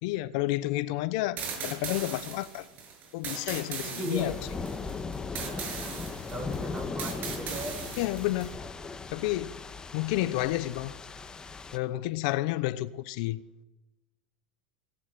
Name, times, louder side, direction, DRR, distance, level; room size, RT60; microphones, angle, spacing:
voice 1, 0.0-2.7 3.1-4.3 8.0-8.6 9.1-9.6 9.9-10.9 11.7-13.4, left 17 dB, 70° left, 0.9 m, -30 dB
sound 1, 1.4-8.5, right 6 dB, 50° right, 7.6 m, -39 dB
voice 2, 3.8-4.4 5.4-7.8, right 1 dB, 20° right, 7.7 m, -39 dB
sound 2, 4.2-11.8, left 4 dB, 20° left, 1.8 m, -38 dB
18.0 x 17.5 x 8.6 m
supercardioid pair, 100°, 4 cm